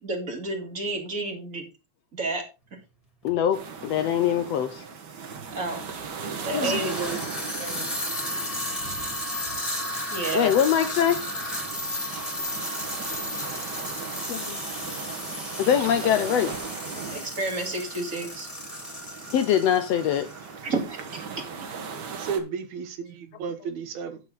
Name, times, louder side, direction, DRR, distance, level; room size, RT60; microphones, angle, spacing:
voice 1, 0.0-1.6 2.1-2.4 5.5-5.8 6.4-6.9 10.1-10.5 16.0-16.1 17.1-18.5 20.6-21.3, right 2 dB, 30° right, 2.1 m, -30 dB
voice 2, 3.2-4.8 6.5-6.8 10.3-11.2 12.2-12.3 14.3-14.6 15.6-16.5 19.3-20.3, left 9 dB, 75° left, 1.6 m, -23 dB
sound 1, 3.2-3.4 4.3-4.4 6.5-20.6, left 1 dB, 10° left, 2.6 m, -34 dB
sound 2, 3.5-22.4, right 5 dB, 50° right, 1.4 m, -39 dB
voice 3, 6.6-7.2 7.6-7.9 22.1-24.2, right 6 dB, 75° right, 2.5 m, -33 dB
10.0 x 7.7 x 3.8 m
omnidirectional pair, 3.4 m